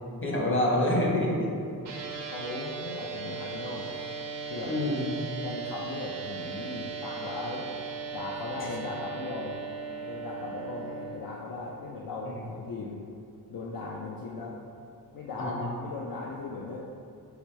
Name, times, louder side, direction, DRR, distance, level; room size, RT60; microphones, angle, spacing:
voice 1, 0.2-1.5 4.6-5.2 8.6-8.7 12.2-12.4 15.4-15.7, left 1 dB, 30° left, -3 dB, 0.9 m, -27 dB
sound 1, 1.8-11.2, right 5 dB, 85° right, 0.7 m, -38 dB
voice 2, 2.3-3.9 4.5-4.7 5.4-7.7 8.1-9.6 10.0-13.0 13.5-14.6 15.1-16.9, left 3 dB, 60° left, -3 dB, 0.5 m, -38 dB
4.8 x 3.3 x 3.1 m, 2.5 s
wide cardioid pair, 105°, 40 cm